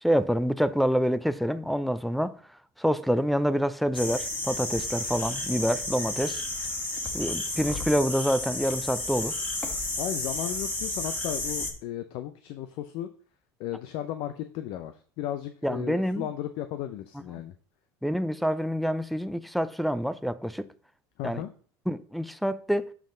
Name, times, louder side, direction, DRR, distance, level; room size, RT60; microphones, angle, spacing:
voice 1, 0.0-2.3 2.8-6.4 7.1-9.4 15.6-16.3 18.0-20.7 21.2-21.4 21.9-22.9, equal, ahead, 0.5 m, -27 dB
sound 1, 3.9-11.7, left 2 dB, 20° left, 1.8 m, -32 dB
voice 2, 10.0-13.1 13.6-17.5 21.2-21.5, left 11 dB, 65° left, 0.6 m, -35 dB
7.3 x 5.4 x 3.9 m
hypercardioid pair, 85°, 10 cm